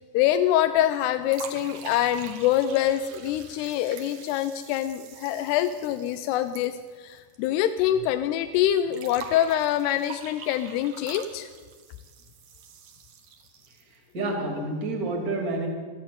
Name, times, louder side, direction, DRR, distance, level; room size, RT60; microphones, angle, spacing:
voice 1, 0.1-11.5, left 11 dB, 80° left, 10 dB, 2.5 m, -25 dB
sound 1, 1.3-7.5 7.7-7.8 8.9-14.0, right 7 dB, 70° right, 1.6 m, -44 dB
voice 2, 13.9-15.7, right 2 dB, 25° right, 1 dB, 2.3 m, -29 dB
13.5 x 11.5 x 9.2 m, 1.5 s
omnidirectional pair, 5.0 m